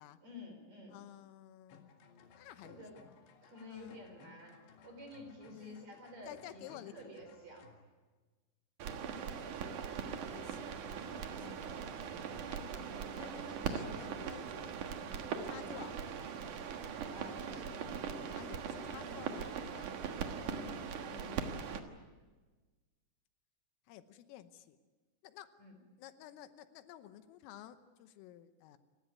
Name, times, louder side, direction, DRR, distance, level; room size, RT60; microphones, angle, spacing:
voice 1, 0.2-1.0 2.6-3.0 3.4-7.7 11.4-11.6 15.5-15.7 17.1-17.8 20.2-20.5 25.6-25.7, left 1 dB, 35° right, 4 dB, 4.7 m, -51 dB
voice 2, 0.9-1.8 2.3-2.8 3.7-4.0 5.5-5.9 6.3-7.1 9.0-9.3 9.6-10.7 11.2-11.5 12.5-14.7 15.4-16.0 18.3-19.9 20.5-21.6 23.9-24.8 25.2-25.5 26.0-28.8, left 12 dB, 85° left, 11 dB, 3.6 m, -53 dB
sound 1, 1.7-7.8, left 6 dB, 60° left, 3.7 m, -61 dB
sound 2, 8.8-21.8, right 6 dB, 65° right, 2.0 m, -40 dB
28.5 x 16.0 x 9.5 m, 1.3 s
omnidirectional pair, 5.9 m